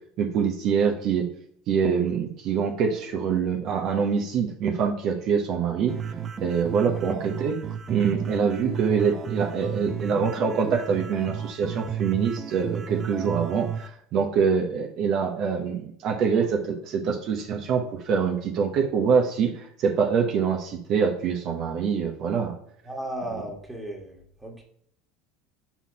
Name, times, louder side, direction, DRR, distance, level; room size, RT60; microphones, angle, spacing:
voice 1, 0.2-1.2 1.7-5.9 6.4-7.5 7.9-22.5, right 6 dB, 55° right, 1 dB, 1.0 m, -25 dB
sound 1, 5.9-13.9, right 7 dB, 35° right, 0.6 m, -33 dB
voice 2, 22.8-24.6, right 1 dB, 10° right, 0 dB, 1.8 m, -35 dB
5.8 x 4.2 x 4.1 m, 0.67 s
supercardioid pair, 100°, 0 cm